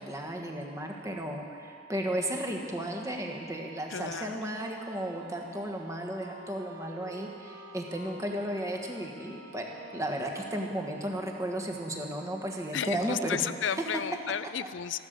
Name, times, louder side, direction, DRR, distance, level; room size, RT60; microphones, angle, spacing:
voice 1, 0.0-13.4, right 1 dB, 15° right, 1 dB, 1.4 m, -34 dB
sound 1, 0.7-14.2, right 7 dB, 45° right, 1.9 m, -53 dB
voice 2, 3.9-4.6 12.7-15.0, left 8 dB, 70° left, 14 dB, 0.5 m, -33 dB
Wind instrument woodwind instrument, 3.9-11.6, right 1 dB, 80° right, 2.8 m, -51 dB
15.0 x 12.0 x 6.7 m, 2.2 s
head